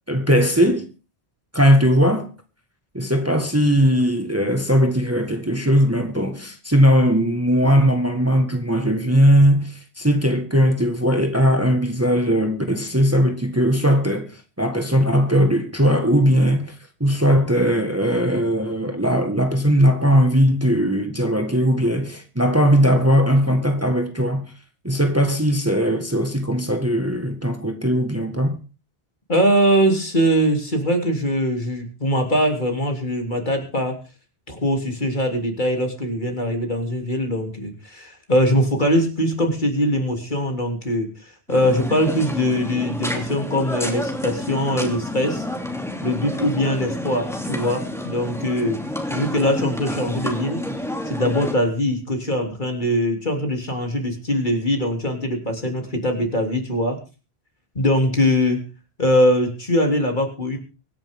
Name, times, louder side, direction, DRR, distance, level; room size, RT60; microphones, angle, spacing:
voice 1, 0.1-0.9 1.5-2.3 2.9-16.7 17.0-24.5 24.8-28.6, equal, 15° right, 1.6 m, -19 dB
voice 2, 29.3-34.0 34.5-41.1 41.5-45.5 46.0-48.8 49.1-50.6 51.0-57.0 57.7-58.6 59.0-60.6, equal, 50° left, 3.4 m, -22 dB
sound 1, 41.5-51.5, left 1 dB, 5° left, 2.9 m, -29 dB
24.5 x 10.5 x 3.7 m
omnidirectional pair, 1.1 m